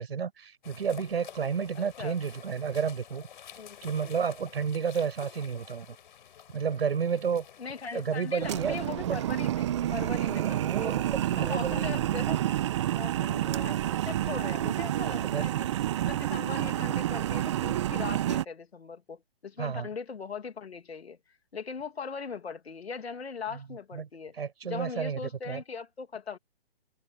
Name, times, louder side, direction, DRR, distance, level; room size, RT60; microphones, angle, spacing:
voice 1, 0.0-3.2 3.8-6.0 6.5-7.4 7.9-8.8 9.0-9.2 10.2-12.0 15.2-15.5 19.6-19.9 23.9-24.1 24.4-25.6, right 6 dB, 65° right, 5.2 m, -31 dB
sound 1, 0.6-8.9, left 9 dB, 50° left, 3.8 m, -50 dB
voice 2, 1.7-2.1 3.6-4.1 7.6-11.1 11.4-12.4 12.9-15.7 16.0-21.2 21.5-24.4 24.7-26.4, left 5 dB, 80° left, 2.6 m, -40 dB
sound 2, 8.4-18.4, right 12 dB, 30° right, 0.8 m, -29 dB
hypercardioid pair, 155°, 31 cm